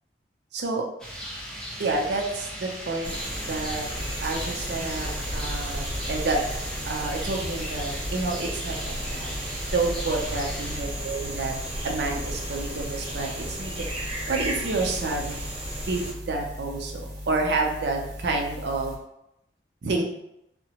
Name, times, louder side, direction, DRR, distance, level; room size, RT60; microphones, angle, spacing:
voice 1, 0.5-0.8 1.8-3.2 3.4-3.9 4.2-6.4 6.9-9.3 9.7-11.5 11.8-15.5 15.9-16.9 17.3-18.9 19.8-20.0, right 3 dB, 70° right, 1 dB, 0.5 m, -29 dB
Rain, 1.0-10.8, equal, 5° left, 0.5 m, -38 dB
sound 1, 3.0-16.1, right 1 dB, 30° right, 0.8 m, -34 dB
sound 2, 3.9-19.0, equal, 90° right, 0.9 m, -39 dB
2.8 x 2.1 x 2.8 m, 0.84 s
head